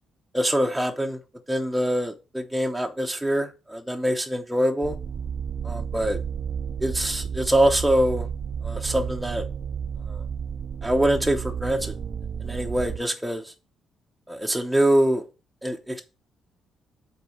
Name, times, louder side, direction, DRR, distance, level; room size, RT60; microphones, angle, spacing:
voice 1, 0.3-1.2 1.5-5.0 5.6-6.2 6.8-8.3 8.6-9.4 10.1-10.2 10.8-11.9 12.4-13.5 14.3-15.2 15.6-16.0, right 1 dB, 5° right, 0.9 m, -24 dB
sound 1, 4.8-13.0, right 7 dB, 55° right, 0.5 m, -32 dB
6.8 x 4.0 x 6.4 m
cardioid pair, 90°, 0 cm